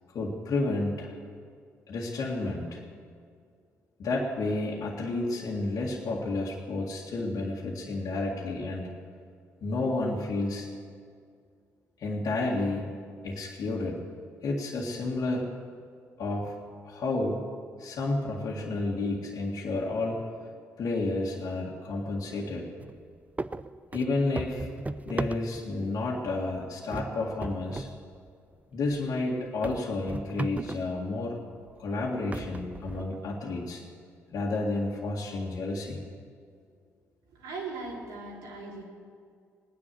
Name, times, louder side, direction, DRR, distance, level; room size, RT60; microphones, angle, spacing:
voice 1, 0.1-1.1 1.9-2.8 4.0-8.9 9.6-10.7 12.0-12.9 13.2-14.0 14.4-15.5 16.2-16.6 16.8-17.5 17.8-20.3 20.8-22.7 23.9-24.7 25.0-27.9 28.7-31.4 31.8-33.9 34.3-36.0, left 2 dB, 65° left, -3 dB, 2.0 m, -31 dB
sound 1, 22.8-23.0 23.4-25.8 26.3-26.6 26.9-28.0 28.3-28.4 28.9-29.0 29.6-31.0 31.7-31.8 32.3-33.3, right 2 dB, 20° right, 0.6 m, -36 dB
voice 2, 37.3-38.8, right 3 dB, 85° right, -4 dB, 3.8 m, -39 dB
18.0 x 10.0 x 7.7 m, 2.2 s
hypercardioid pair, 50°, 7 cm